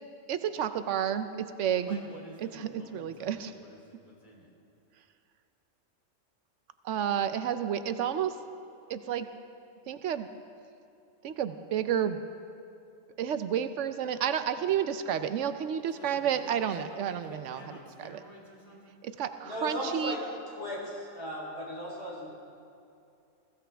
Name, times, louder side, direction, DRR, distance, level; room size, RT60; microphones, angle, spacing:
voice 1, 0.3-2.0 2.4-3.5 6.8-8.4 8.9-9.3 9.9-10.3 11.2-12.2 13.2-17.6 18.0-18.2 19.0-20.2, right 9 dB, 75° right, 10 dB, 0.9 m, -31 dB
voice 2, 1.7-4.5 15.9-19.0, equal, 40° left, -4 dB, 3.4 m, -51 dB
voice 3, 19.4-20.2 20.5-22.3, equal, 60° left, -4 dB, 3.8 m, -36 dB
21.0 x 15.0 x 3.4 m, 2.5 s
omnidirectional pair, 1.3 m